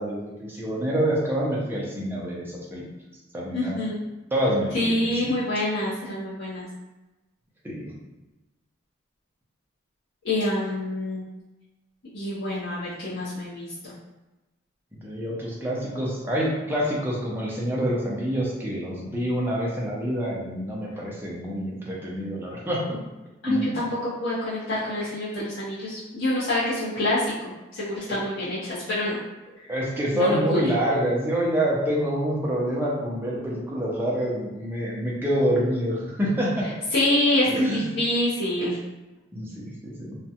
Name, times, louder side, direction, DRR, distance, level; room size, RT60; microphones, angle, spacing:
voice 1, 0.0-2.9 3.3-3.8 4.3-5.3 7.6-7.9 14.9-23.0 23.5-23.7 28.1-28.2 29.7-36.7 37.4-37.9 39.3-40.2, equal, 10° right, -5 dB, 0.4 m, -27 dB
voice 2, 3.5-4.0 4.7-6.7 10.2-11.2 12.1-13.9 23.4-29.2 29.6-29.7 30.1-30.7 36.9-38.8, left 1 dB, 70° left, -11 dB, 0.6 m, -26 dB
2.4 x 2.1 x 2.7 m, 1.1 s
head